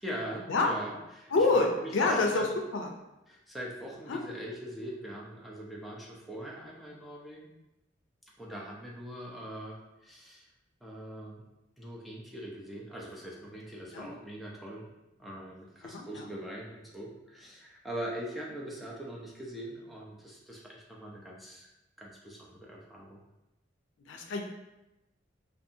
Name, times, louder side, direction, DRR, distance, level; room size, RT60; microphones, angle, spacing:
voice 1, 0.0-2.5 3.3-7.5 8.4-9.8 10.0-10.5 10.8-11.4 11.8-14.9 15.2-21.7 22.0-23.2, equal, ahead, -4 dB, 0.4 m, -42 dB
voice 2, 1.3-2.5 2.7-2.9 4.1-4.2 13.9-14.1 15.8-16.3 24.1-24.4, left 3 dB, 90° left, 2 dB, 0.4 m, -27 dB
2.6 x 2.4 x 2.6 m, 0.95 s
head